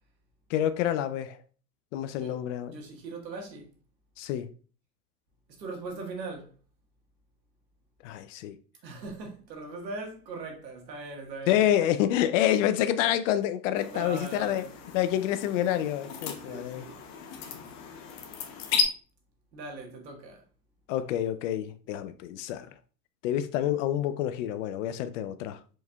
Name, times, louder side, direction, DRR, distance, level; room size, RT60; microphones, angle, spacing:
voice 1, 0.5-1.4 1.9-2.8 4.2-4.5 8.0-8.5 11.5-14.6 14.9-16.8 20.9-22.7 23.2-25.6, left 11 dB, 50° left, 0.5 m, -27 dB
voice 2, 2.7-3.7 5.6-6.5 8.8-11.6 13.9-14.7 16.4-17.0 19.5-20.4, right 3 dB, 85° right, 1.6 m, -40 dB
sound 1, 13.7-18.8, left 7 dB, 35° left, 0.8 m, -35 dB
4.7 x 4.2 x 2.3 m
hypercardioid pair, 110°, 50 cm